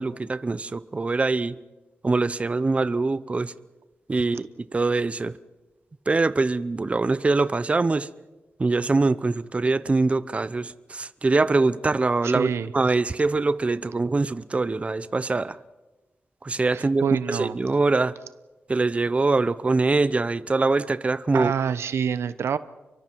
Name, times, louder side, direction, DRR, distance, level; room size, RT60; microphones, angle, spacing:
voice 1, 0.0-1.6 2.0-3.5 4.1-5.4 6.1-8.1 8.6-15.6 16.4-18.1 18.7-21.5, right 3 dB, 30° right, 0.7 m, -23 dB
voice 2, 12.2-12.7 16.7-17.6 21.3-22.6, right 7 dB, 80° right, 0.9 m, -26 dB
29.5 x 23.5 x 4.6 m
cardioid pair, 85°, 4 cm